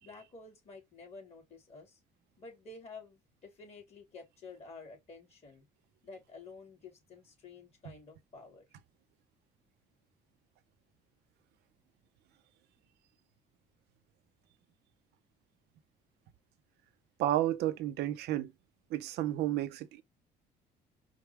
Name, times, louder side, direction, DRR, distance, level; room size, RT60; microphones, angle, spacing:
voice 1, 0.0-2.0 2.4-5.6 6.0-8.7, left 3 dB, 40° left, 2.7 m, -51 dB
voice 2, 17.2-18.5 18.9-20.0, right 13 dB, 80° right, 0.7 m, -31 dB
5.0 x 2.3 x 3.2 m
cardioid pair, 110°, 17 cm